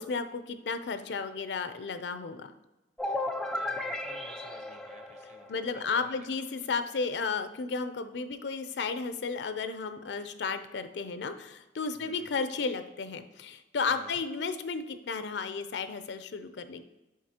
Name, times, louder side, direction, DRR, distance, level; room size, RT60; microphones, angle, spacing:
voice 1, 0.0-2.5 5.5-16.8, left 4 dB, 75° left, 10 dB, 0.5 m, -33 dB
sound 1, 3.0-5.8, left 2 dB, 5° left, 0.4 m, -35 dB
voice 2, 3.4-6.3 12.0-12.3 13.9-14.2, right 2 dB, 40° right, 4 dB, 0.8 m, -53 dB
7.3 x 5.0 x 2.9 m, 1.0 s
head